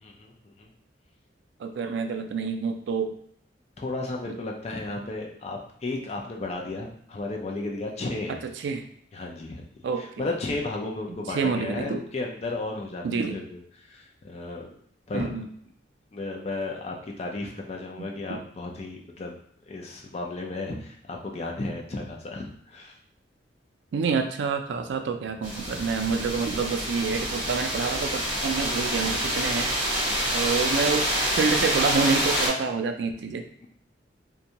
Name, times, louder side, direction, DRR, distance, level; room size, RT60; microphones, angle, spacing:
voice 1, 0.0-0.7 3.8-8.4 9.1-9.6 10.0-13.6 13.9-14.7 15.1-15.4 16.1-19.4 19.7-22.9 30.1-30.5, left 2 dB, 35° left, 0 dB, 0.4 m, -34 dB
voice 2, 1.6-3.1 8.3-8.9 9.8-10.3 11.3-12.0 13.0-13.4 15.1-15.5 18.0-18.4 23.9-29.7 30.3-33.4, right 5 dB, 70° right, 6 dB, 0.3 m, -28 dB
sound 1, 25.4-32.5, right 1 dB, 25° right, 1.1 m, -27 dB
2.6 x 2.2 x 2.8 m, 0.64 s
head